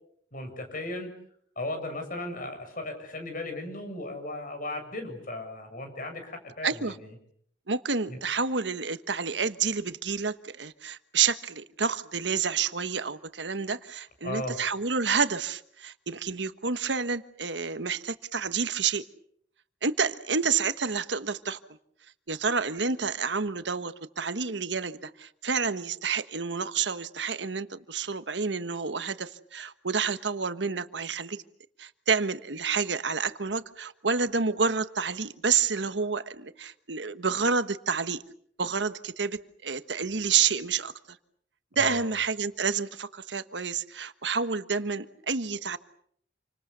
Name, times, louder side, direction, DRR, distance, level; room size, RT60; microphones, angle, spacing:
voice 1, 0.3-1.1 1.6-7.1 8.1-8.2 14.2-14.6 41.8-42.0, left 2 dB, 50° left, 6 dB, 7.2 m, -36 dB
voice 2, 6.6-7.0 7.7-19.0 19.8-21.6 22.3-31.4 31.8-38.2 38.6-41.2 41.7-45.8, right 5 dB, 80° right, 11 dB, 1.4 m, -29 dB
28.5 x 25.5 x 7.0 m, 0.67 s
head